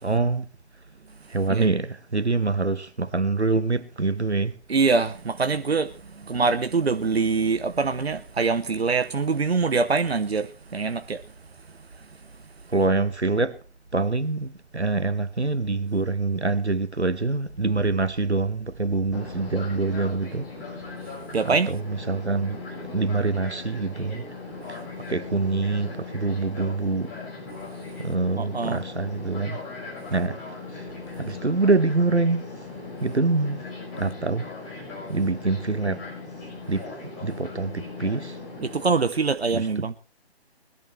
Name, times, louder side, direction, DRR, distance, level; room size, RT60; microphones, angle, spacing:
voice 1, 0.0-0.5 1.3-4.5 12.7-13.6 13.9-20.5 21.4-22.6 22.9-24.3 24.7-24.8 25.1-27.1 28.0-29.6 30.1-30.4 31.2-32.5 33.0-33.7 34.0-34.5 35.1-36.0 36.7-38.4 39.5-39.9, right 3 dB, 85° right, 1.3 m, -25 dB
voice 2, 4.7-11.3 11.7-12.2 21.3-21.7 28.4-28.8 38.6-39.9, right 4 dB, 70° right, 0.9 m, -24 dB
Fixed-wing aircraft airplane, 19.1-38.9, left 3 dB, 15° left, 5.6 m, -38 dB
21.0 x 13.5 x 3.3 m
figure-of-eight pair, 145°, 32 cm